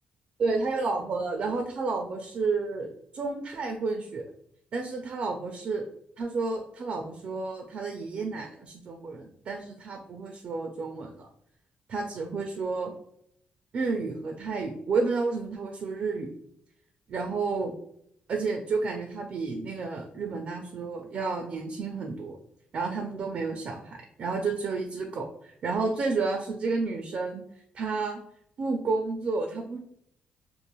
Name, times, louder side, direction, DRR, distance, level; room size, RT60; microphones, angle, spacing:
voice 1, 0.4-4.2 4.7-5.8 6.2-11.3 11.9-12.9 13.7-16.3 17.1-17.7 18.3-22.4 22.7-27.4 27.7-28.2 28.6-29.8, right 4 dB, 50° right, 3 dB, 0.4 m, -31 dB
3.0 x 2.4 x 2.2 m, 0.71 s
cardioid pair, 130°, 3 cm